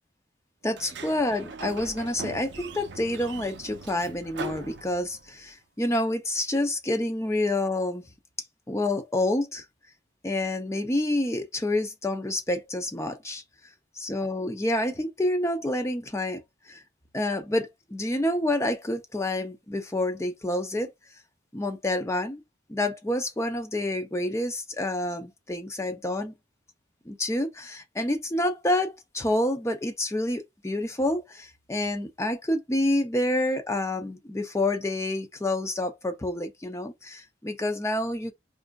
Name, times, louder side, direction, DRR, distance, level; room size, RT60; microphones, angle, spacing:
voice 1, 0.6-8.0 8.7-9.6 10.2-13.4 14.0-16.4 16.7-16.8 17.1-20.9 21.5-22.4 22.7-26.3 27.1-38.3, left 1 dB, 15° left, 0.5 m, -28 dB
Sliding door, 0.7-5.4, right 3 dB, 70° right, 0.5 m, -40 dB
4.7 x 2.5 x 2.3 m
head